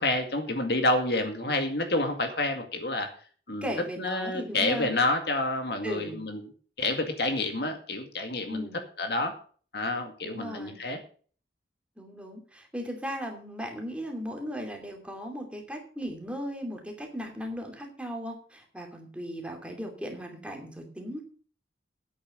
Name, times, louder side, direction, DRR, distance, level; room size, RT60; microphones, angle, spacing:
voice 1, 0.0-3.1 3.5-3.7 4.0-6.5 6.8-8.7 9.0-9.3 9.7-11.0, left 2 dB, 60° left, 5 dB, 2.1 m, -28 dB
voice 2, 3.6-4.9 5.8-6.2 8.5-8.8 10.2-10.8 12.0-21.2, equal, 5° right, 2 dB, 2.7 m, -37 dB
10.0 x 8.7 x 6.6 m, 0.43 s
head